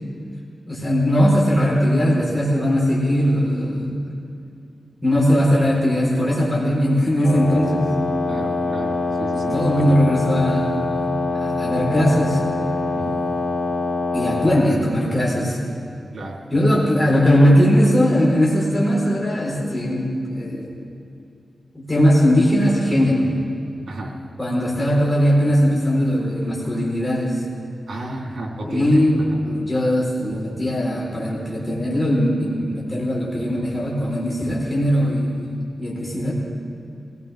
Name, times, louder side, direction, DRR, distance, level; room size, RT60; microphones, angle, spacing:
voice 1, 0.7-4.2 5.0-7.9 9.3-12.4 14.1-15.6 16.5-20.8 21.7-23.3 24.4-27.4 28.6-36.3, equal, 15° left, -5 dB, 4.3 m, -19 dB
Wind instrument woodwind instrument, 7.2-14.6, left 3 dB, 60° left, 3.4 m, -24 dB
voice 2, 8.3-10.0 13.0-13.2 16.1-16.4 16.7-16.8 23.9-24.1 27.9-29.0 29.3-29.4 30.3-30.5, right 2 dB, 80° right, -2 dB, 3.3 m, -33 dB
23.0 x 17.5 x 3.6 m, 2.5 s
wide cardioid pair, 95°, 0 cm